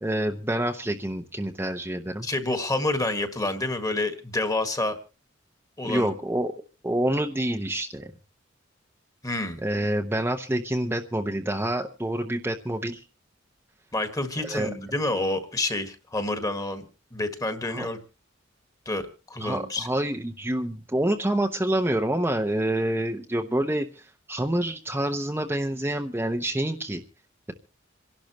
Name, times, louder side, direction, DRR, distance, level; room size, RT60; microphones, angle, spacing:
voice 1, 0.0-2.3 5.8-6.5 6.8-8.1 9.6-13.0 14.4-14.7 17.7-17.9 19.4-27.0, right 1 dB, 10° right, 3 dB, 0.8 m, -27 dB
voice 2, 2.2-5.0 5.8-6.1 9.2-9.6 13.9-16.8 17.1-18.0 18.8-19.9, left 2 dB, 20° left, 8 dB, 1.6 m, -28 dB
27.5 x 11.5 x 3.0 m, 0.33 s
head